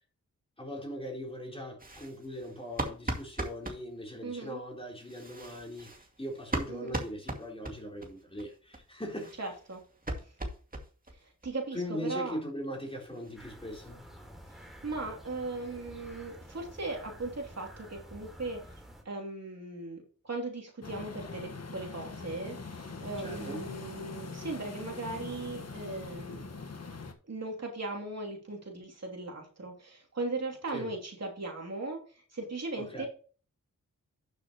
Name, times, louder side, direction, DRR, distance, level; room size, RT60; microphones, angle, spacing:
voice 1, 0.6-5.9 6.2-9.3 11.7-14.0 23.2-23.7 30.7-30.9 32.8-33.1, equal, 15° left, 3.8 m, -40 dB
sound 1, 1.8-3.8 5.0-8.1 8.4-8.5 8.7-8.8 9.1-11.2 11.4-11.5 11.9-12.0 12.3-12.4 12.6-13.5, right 1 dB, 25° right, 2.2 m, -38 dB
voice 2, 4.2-4.6 6.7-7.0 9.4-9.8 11.4-12.3 14.5-18.6 19.0-26.5 27.3-33.1, right 2 dB, 50° right, 3.0 m, -38 dB
sound 2, 13.3-19.0, equal, ahead, 3.7 m, -50 dB
sound 3, 20.8-27.1, left 4 dB, 50° left, 1.5 m, -42 dB
12.0 x 6.8 x 3.0 m
wide cardioid pair, 75°, 33 cm